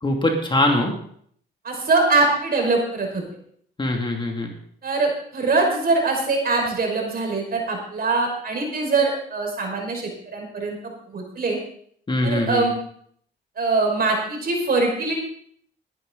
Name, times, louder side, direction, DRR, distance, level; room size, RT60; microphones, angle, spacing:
voice 1, 0.0-0.9 3.8-4.5 12.1-12.6, left 1 dB, 25° left, 2 dB, 2.6 m, -22 dB
voice 2, 1.6-3.2 4.8-11.6 12.2-12.7 13.6-15.1, right 3 dB, 50° right, 1 dB, 5.5 m, -23 dB
20.0 x 10.5 x 4.0 m, 0.62 s
cardioid pair, 90°, 20 cm